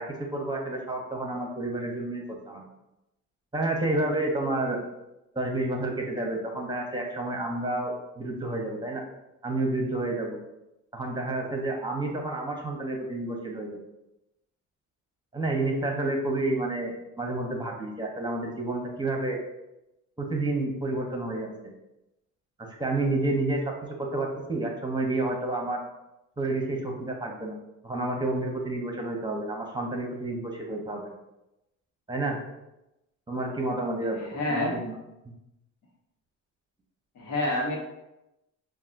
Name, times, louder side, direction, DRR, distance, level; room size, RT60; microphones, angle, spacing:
voice 1, 0.0-2.6 3.5-4.8 5.3-9.0 9.4-10.4 10.9-13.8 15.3-19.4 20.2-21.5 22.6-23.7 24.0-25.8 26.4-27.6 27.8-31.0 32.1-32.4 33.3-35.0, right 2 dB, 15° right, 0 dB, 0.9 m, -30 dB
voice 2, 34.2-34.8 37.2-37.8, left 1 dB, 85° left, -2 dB, 1.3 m, -28 dB
7.1 x 2.5 x 2.6 m, 0.92 s
cardioid pair, 90°, 30 cm